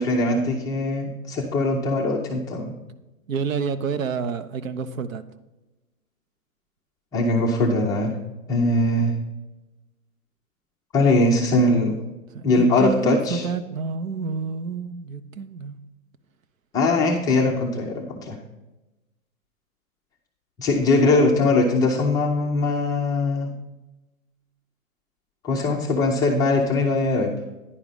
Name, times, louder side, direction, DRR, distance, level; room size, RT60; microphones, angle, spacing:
voice 1, 0.0-2.7 7.1-8.1 8.5-9.1 10.9-12.0 12.4-13.4 16.7-18.4 20.6-23.5 25.4-27.3, left 2 dB, 10° left, -2 dB, 0.4 m, -21 dB
voice 2, 3.3-5.2 12.3-15.8, right 6 dB, 65° right, 11 dB, 0.9 m, -29 dB
10.0 x 4.9 x 5.3 m, 1.0 s
hypercardioid pair, 130°, 43 cm